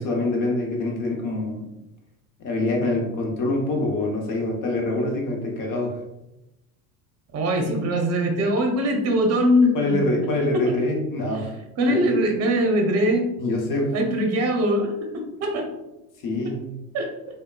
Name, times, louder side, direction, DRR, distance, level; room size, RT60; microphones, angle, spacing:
voice 1, 0.0-1.7 2.4-6.0 9.7-11.6 12.0-12.1 13.4-13.9 16.2-16.6, left 2 dB, 45° left, 0 dB, 0.9 m, -25 dB
voice 2, 7.3-10.1 10.6-10.7 11.8-13.3 13.9-15.7 16.9-17.1, equal, 35° right, 3 dB, 0.7 m, -22 dB
3.5 x 2.2 x 2.2 m, 0.94 s
hypercardioid pair, 90°, 44 cm